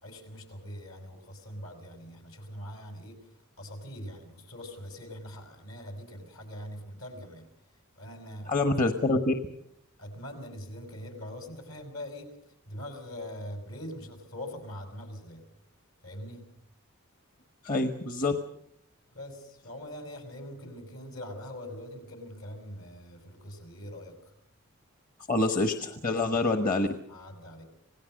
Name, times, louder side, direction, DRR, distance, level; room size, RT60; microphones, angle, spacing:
voice 1, 0.0-3.2 3.6-7.5 8.0-9.2 10.0-12.3 12.7-15.4 16.0-16.4 19.1-24.3 26.3-26.7 27.1-27.6, equal, 70° left, 6 dB, 5.7 m, -43 dB
voice 2, 8.5-9.3 17.6-18.4 25.3-26.9, left 2 dB, 40° left, 7 dB, 1.2 m, -26 dB
27.0 x 17.5 x 6.5 m, 0.71 s
head